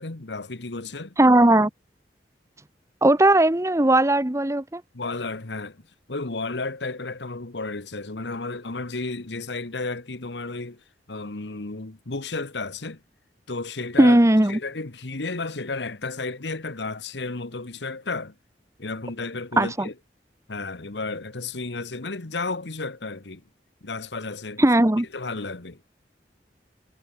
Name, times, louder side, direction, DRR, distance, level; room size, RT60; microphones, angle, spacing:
voice 1, 0.0-1.2 4.9-10.8 11.1-13.0 13.5-14.2 14.5-18.3 18.8-19.9 20.5-23.4 23.8-24.6 25.1-25.8, left 3 dB, 80° left, 1.4 m, -32 dB
voice 2, 1.2-1.7 3.0-4.8 14.0-14.6 19.6-19.9 24.6-25.1, right 1 dB, 15° right, 1.1 m, -18 dB
head